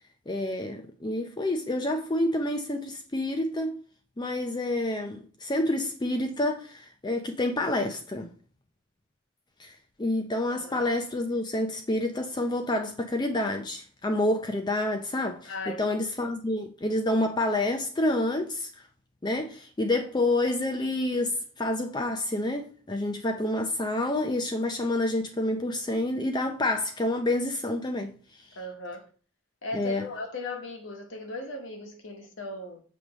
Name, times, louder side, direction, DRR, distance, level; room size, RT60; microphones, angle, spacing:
voice 1, 0.3-3.8 4.2-8.3 9.6-9.7 10.0-18.7 19.2-28.1 29.7-30.1, left 1 dB, 20° left, 0.5 m, -28 dB
voice 2, 15.5-16.3 28.6-29.1 29.6-32.8, left 2 dB, 80° left, 1.3 m, -38 dB
6.9 x 3.2 x 6.1 m
head